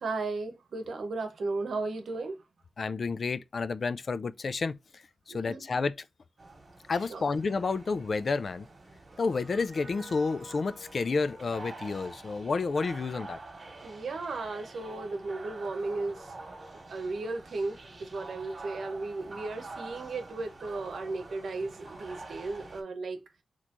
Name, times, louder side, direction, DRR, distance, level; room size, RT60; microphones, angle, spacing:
voice 1, 0.0-2.4 5.3-5.6 7.1-7.2 13.8-16.3 16.9-23.2, right 3 dB, 75° right, 0.9 m, -35 dB
voice 2, 2.8-4.8 5.3-5.9 6.9-8.7 9.2-13.4, left 4 dB, 55° left, 0.3 m, -30 dB
sound 1, 6.4-22.8, right 2 dB, 40° right, 1.6 m, -47 dB
4.3 x 3.0 x 2.4 m
wide cardioid pair, 90°, 0 cm